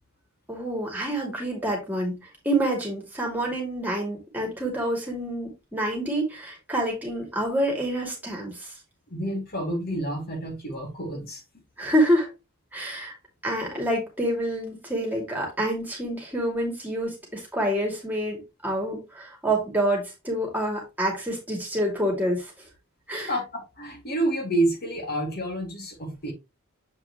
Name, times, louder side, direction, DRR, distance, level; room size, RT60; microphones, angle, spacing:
voice 1, 0.5-2.2 2.4-8.7 11.8-12.3 12.7-13.1 13.4-22.5 23.1-23.3, right 1 dB, 10° right, 2.5 m, -27 dB
voice 2, 9.1-11.4 23.3-26.3, right 1 dB, 50° left, 2.4 m, -29 dB
7.4 x 4.8 x 3.0 m
head